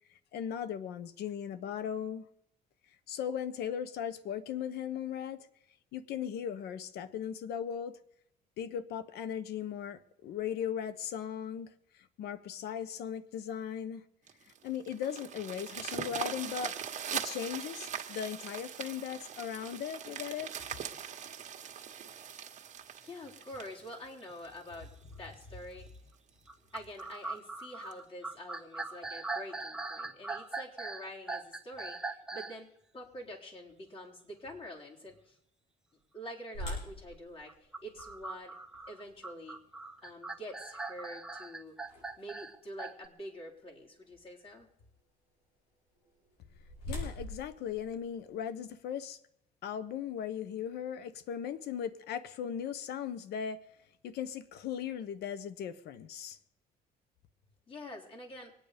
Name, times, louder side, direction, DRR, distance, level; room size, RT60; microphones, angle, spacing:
voice 1, 0.3-2.3 3.1-5.5 5.9-8.0 8.6-14.1 14.6-16.8 17.1-20.5 46.9-49.2 49.6-53.6 54.0-56.4, left 8 dB, 75° left, 1.2 m, -38 dB
sound 1, 14.3-24.7 25.3-25.4 25.9-26.0 26.3-26.4 26.8-27.0 27.9-28.0, right 8 dB, 45° right, 1.6 m, -41 dB
voice 2, 23.0-25.9 26.7-35.4 36.1-38.5 38.9-39.6 40.0-41.8 42.2-44.7 57.7-58.5, equal, 35° left, 4.1 m, -46 dB
sound 2, 23.5-23.7 24.3-24.4 25.0-25.4 26.5-32.6 37.5-43.1, right 3 dB, 5° right, 1.3 m, -41 dB
sound 3, 36.5-42.5 43.0-43.1 43.7-44.0 46.0-48.7, left 1 dB, 90° left, 6.3 m, -45 dB
23.5 x 9.3 x 5.2 m
cardioid pair, 110°, 17 cm